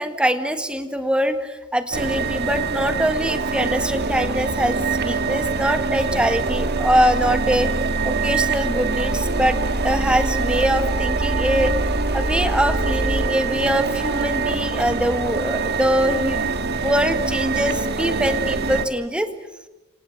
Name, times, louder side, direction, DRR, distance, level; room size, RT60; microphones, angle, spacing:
voice 1, 0.0-7.7 8.0-11.8 12.1-16.5 16.8-19.3, equal, 5° right, 8 dB, 1.7 m, -23 dB
sound 1, 1.9-18.9, right 3 dB, 50° right, 1.6 m, -24 dB
29.0 x 26.0 x 7.2 m, 1.1 s
head